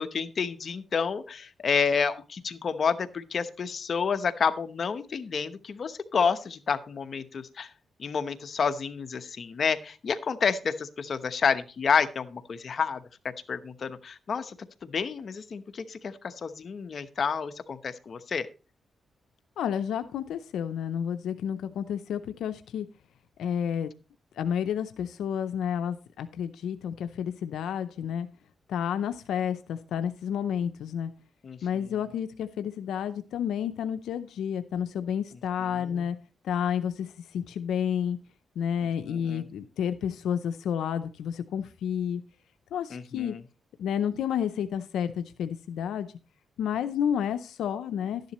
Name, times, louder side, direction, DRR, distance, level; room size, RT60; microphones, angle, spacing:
voice 1, 0.0-7.7 8.0-13.0 13.5-14.5 14.8-18.5 31.4-31.6 31.8-31.9 35.6-36.0 39.1-39.5 42.9-43.4, left 6 dB, 55° left, 10 dB, 0.9 m, -29 dB
voice 2, 19.6-22.9 23.4-23.9 24.4-28.3 28.7-31.1 31.6-36.2 36.4-38.2 38.6-42.2 42.7-43.3 43.8-46.1 46.6-48.2, left 8 dB, 90° left, 10 dB, 0.6 m, -30 dB
12.0 x 10.5 x 3.0 m, 0.33 s
cardioid pair, 80°, 0 cm